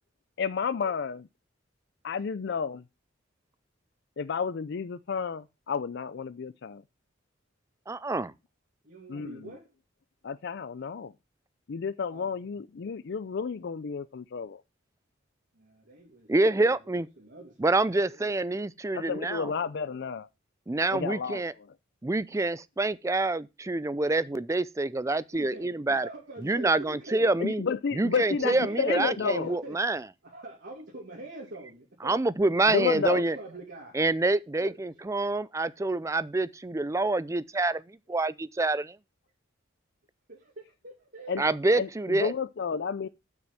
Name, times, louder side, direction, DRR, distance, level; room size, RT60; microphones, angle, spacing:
voice 1, 0.4-1.2 2.0-2.8 4.2-6.8 9.1-9.5 10.2-11.1 11.7-14.6 18.9-20.3 20.9-21.7 27.4-29.6 32.7-33.2 41.3-41.5 41.7-43.1, left 5 dB, 60° left, 0.4 m, -31 dB
voice 2, 7.9-8.3 16.3-17.1 17.6-19.5 20.7-21.5 22.0-26.1 26.4-27.6 27.9-30.0 32.0-33.4 34.0-39.0 41.4-42.3, right 2 dB, 15° right, 0.4 m, -27 dB
voice 3, 8.8-9.7 12.1-12.4 15.5-18.4 25.3-27.3 28.0-29.9 30.2-32.2 32.6-34.0 34.6-34.8 40.3-41.5, right 2 dB, 60° right, 2.4 m, -44 dB
7.5 x 6.1 x 7.2 m
head